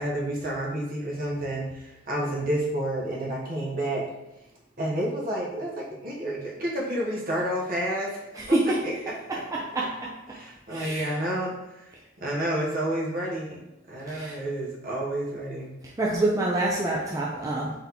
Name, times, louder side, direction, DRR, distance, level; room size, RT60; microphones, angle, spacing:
voice 1, 0.0-4.1 4.8-8.2 8.5-8.6 8.8-8.9 9.3-9.4 10.3-11.5 12.2-13.6 13.9-15.7, right 1 dB, 50° right, -3 dB, 1.0 m, -30 dB
voice 2, 8.4-8.8 9.5-10.1 10.7-11.1 14.1-14.4 16.0-17.7, right 2 dB, 20° right, -4 dB, 0.4 m, -26 dB
4.0 x 3.5 x 2.9 m, 0.94 s
head